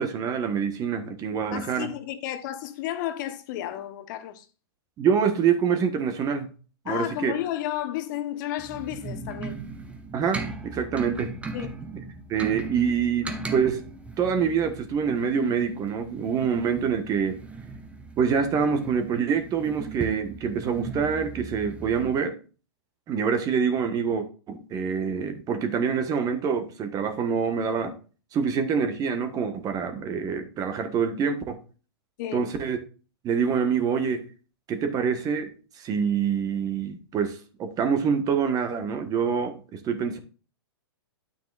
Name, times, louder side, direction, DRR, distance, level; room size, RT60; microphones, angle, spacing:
voice 1, 0.0-1.9 5.0-6.5 6.8-7.3 10.1-11.3 12.3-13.8 14.2-17.4 18.2-22.4 23.1-28.0 28.3-31.6 32.3-32.8 33.2-34.3 34.7-35.5 35.8-40.2, right 6 dB, 25° right, 1.4 m, -26 dB
voice 2, 1.5-4.5 6.8-9.6 11.5-11.8 32.2-32.5, left 12 dB, 45° left, 1.1 m, -32 dB
sound 1, 8.6-22.2, right 3 dB, 10° right, 1.0 m, -38 dB
9.3 x 9.0 x 2.5 m
hypercardioid pair, 115°, 14 cm